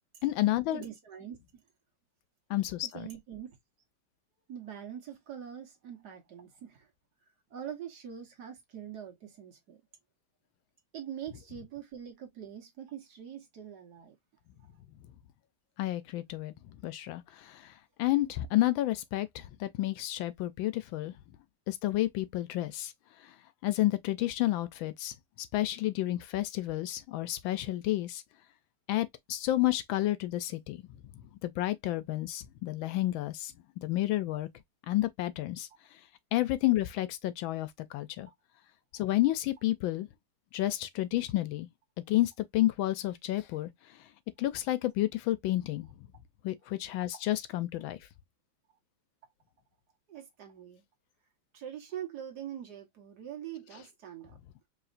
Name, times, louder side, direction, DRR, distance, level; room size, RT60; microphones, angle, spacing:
voice 1, 0.2-0.8 2.5-3.1 15.8-16.5 16.8-17.7 18.0-21.1 21.7-22.9 23.2-23.3 23.6-25.1 25.5-28.2 28.9-30.9 31.4-33.5 33.8-34.5 34.9-35.7 36.3-38.3 38.9-40.1 40.5-41.7 42.1-43.7 44.4-45.9 46.4-48.0, left 15 dB, 80° left, 1.3 m, -30 dB
voice 2, 0.7-1.4 2.9-3.6 4.5-6.9 7.5-9.8 10.9-14.2 50.1-50.8 51.5-54.4, right 9 dB, 55° right, 1.6 m, -43 dB
4.9 x 3.1 x 2.5 m
omnidirectional pair, 2.2 m